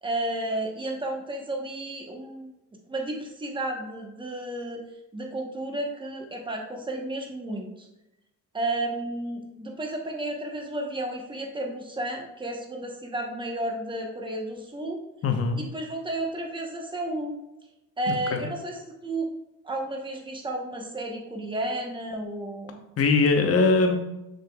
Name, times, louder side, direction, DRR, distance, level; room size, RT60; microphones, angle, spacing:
voice 1, 0.0-2.5 2.9-4.8 5.1-7.9 8.5-15.0 15.6-17.4 18.0-19.3 19.6-22.8, right 1 dB, 15° right, 1 dB, 1.1 m, -32 dB
voice 2, 15.2-15.6 18.3-18.5 23.0-24.0, left 3 dB, 45° left, 4 dB, 1.0 m, -21 dB
6.6 x 6.5 x 2.4 m, 0.93 s
cardioid pair, 140°, 32 cm